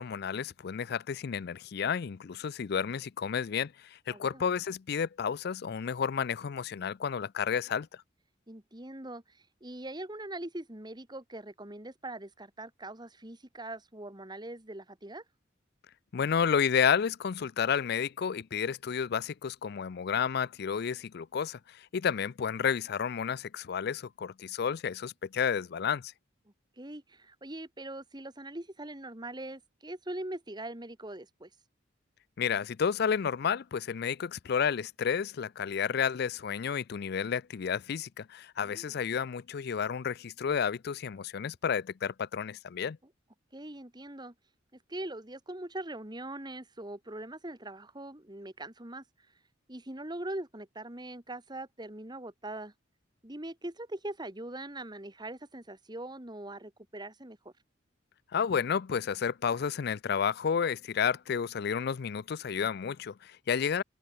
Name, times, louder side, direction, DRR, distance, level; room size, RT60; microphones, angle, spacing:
voice 1, 0.0-7.9 16.1-26.1 32.4-43.0 58.3-63.8, left 7 dB, 55° left, 0.4 m, -31 dB
voice 2, 4.1-4.4 8.5-15.2 26.5-31.5 38.6-39.0 43.5-44.3 44.7-49.3 49.7-52.7 53.2-57.5, right 1 dB, 20° right, 2.2 m, -42 dB
head